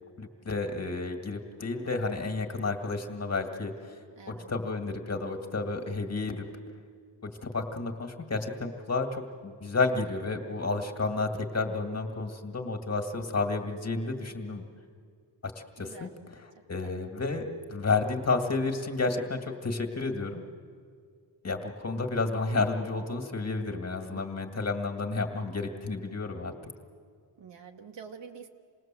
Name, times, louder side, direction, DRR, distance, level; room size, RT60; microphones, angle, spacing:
voice 1, 0.2-3.7 4.3-6.4 7.2-14.6 15.4-15.5 15.8-16.1 16.7-20.4 21.4-26.5, left 3 dB, 30° left, 4 dB, 2.0 m, -31 dB
voice 2, 4.1-4.5 15.8-16.1 16.8-16.9 24.1-24.3 27.4-28.5, right 6 dB, 60° right, 3 dB, 1.5 m, -47 dB
27.5 x 19.5 x 7.6 m, 2.1 s
wide cardioid pair, 105°, 48 cm